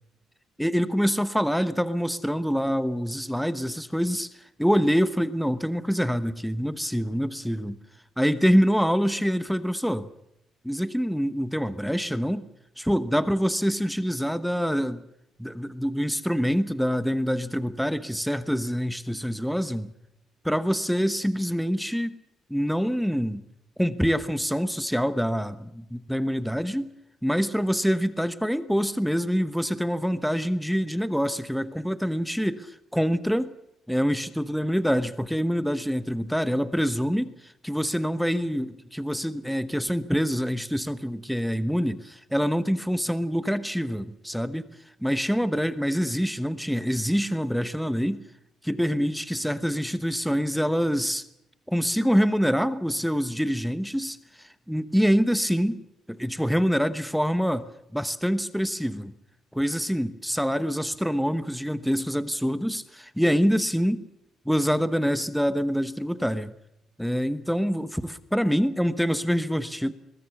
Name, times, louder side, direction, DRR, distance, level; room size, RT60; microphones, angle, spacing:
voice 1, 0.6-4.3 4.6-7.8 8.2-10.1 10.6-12.5 12.8-15.0 15.4-19.9 20.4-22.2 22.5-23.4 23.8-26.9 27.2-33.5 33.9-44.7 45.0-48.2 48.6-51.2 51.7-55.8 56.1-57.7 57.9-59.1 59.5-64.0 64.4-66.5 67.0-69.9, equal, ahead, 13 dB, 1.0 m, -25 dB
22.5 x 20.5 x 7.2 m, 0.81 s
cardioid pair, 140°, 0 cm